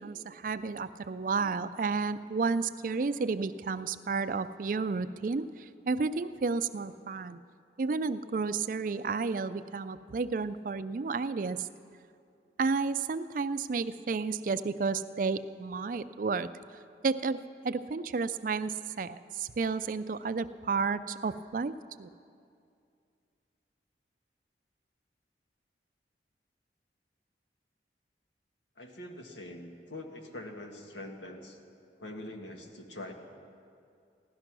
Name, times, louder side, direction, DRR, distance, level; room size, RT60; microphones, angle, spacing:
voice 1, 0.0-7.4 7.8-11.7 12.6-16.5 17.0-22.1, right 4 dB, 50° right, 13 dB, 0.4 m, -32 dB
voice 2, 28.8-31.6 32.0-33.1, left 1 dB, 90° left, 3 dB, 1.6 m, -44 dB
16.0 x 12.0 x 6.1 m, 2.4 s
head